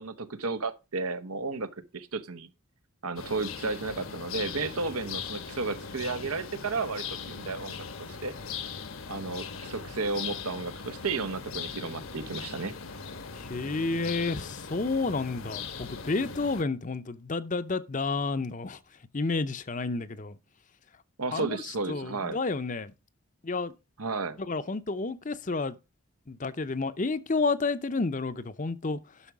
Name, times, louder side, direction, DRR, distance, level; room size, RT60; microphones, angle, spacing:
voice 1, 0.0-2.5 3.0-8.3 9.1-12.8 21.2-22.4 24.0-24.4, right 3 dB, 90° right, 1.1 m, -33 dB
sound 1, 3.2-16.6, left 6 dB, 70° left, 1.2 m, -40 dB
voice 2, 13.3-18.8 19.1-20.4 21.3-21.5 21.9-22.9 23.4-23.7 24.5-25.8 26.3-29.0, left 3 dB, 35° left, 0.7 m, -30 dB
11.5 x 6.3 x 4.8 m
head